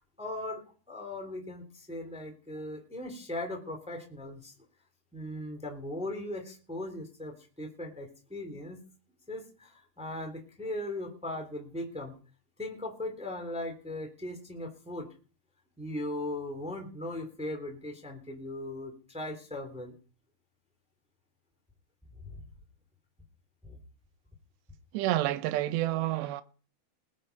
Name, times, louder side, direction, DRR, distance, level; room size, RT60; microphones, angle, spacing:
voice 1, 0.0-4.5 5.1-8.8 9.3-12.1 12.6-15.1 15.8-19.9 22.2-22.4 23.6-23.8, left 1 dB, ahead, 2.2 m, -38 dB
voice 2, 24.9-26.4, right 15 dB, 85° right, 3.0 m, -29 dB
20.0 x 7.6 x 5.3 m
omnidirectional pair, 4.9 m